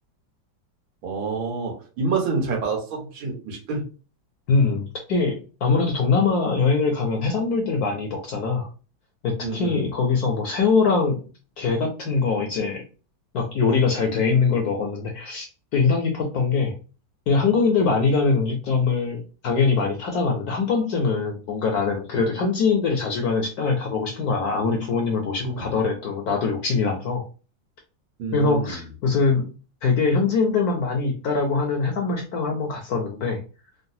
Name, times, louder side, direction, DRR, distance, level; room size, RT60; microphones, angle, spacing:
voice 1, 1.0-3.8 9.4-9.8 25.4-25.7 28.2-28.7, right 4 dB, 80° right, 1 dB, 1.8 m, -27 dB
voice 2, 4.5-5.4 5.6-8.7 9.2-11.2 11.6-12.8 13.3-15.5 15.7-16.7 17.3-27.2 28.3-29.5 29.8-33.4, left 4 dB, 65° left, 2 dB, 1.0 m, -22 dB
3.8 x 2.0 x 2.6 m, 0.34 s
omnidirectional pair, 2.2 m